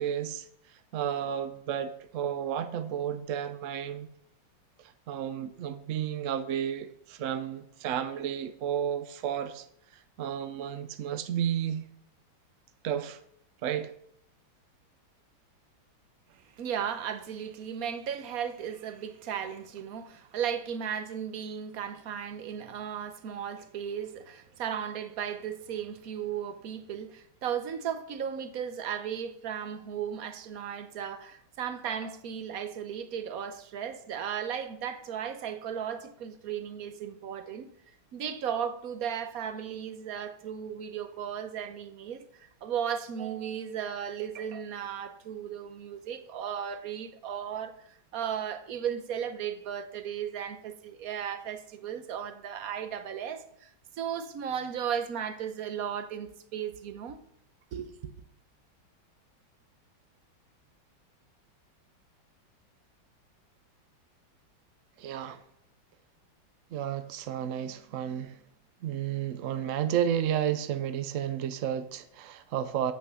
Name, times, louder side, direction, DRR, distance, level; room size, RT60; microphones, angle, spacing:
voice 1, 0.0-4.1 4.8-9.7 9.9-11.8 12.8-13.2 13.6-13.9 65.0-65.4 66.7-68.4 68.8-72.9, right 9 dB, 75° right, 0.7 m, -32 dB
voice 2, 16.6-37.7 38.1-53.7 54.0-57.2 57.7-58.1, right 8 dB, 60° right, 1.1 m, -35 dB
8.9 x 6.1 x 6.9 m
omnidirectional pair, 2.2 m